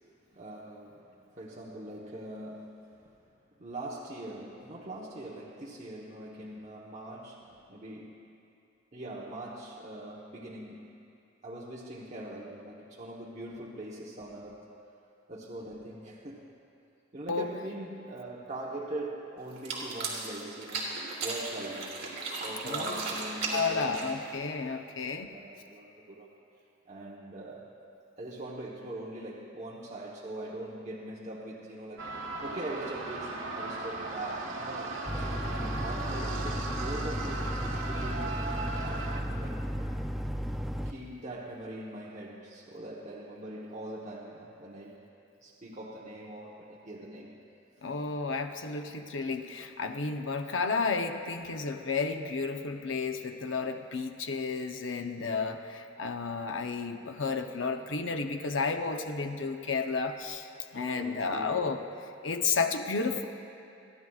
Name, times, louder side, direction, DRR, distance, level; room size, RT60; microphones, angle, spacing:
voice 1, 0.3-1.0 1.3-2.9 3.6-8.3 8.9-11.0 11.4-14.7 15.3-16.5 17.1-20.9 21.2-24.1 24.9-25.0 25.3-26.3 26.9-27.7 28.2-32.1 32.4-38.3 38.8-39.7 40.8-45.0 45.4-47.3 55.0-55.5 60.7-61.7, right 1 dB, 35° right, -5 dB, 1.1 m, -42 dB
sound 1, 19.5-24.4, right 3 dB, 55° right, 3.1 m, -36 dB
voice 2, 22.6-23.0 23.5-25.3 47.8-60.5 60.7-61.8 62.2-63.3, left 4 dB, 70° left, 6 dB, 0.7 m, -32 dB
sound 2, 32.0-39.2, right 3 dB, 75° right, 1.3 m, -37 dB
sound 3, 35.1-40.9, equal, ahead, 0.4 m, -34 dB
29.0 x 11.0 x 2.4 m, 2.7 s
head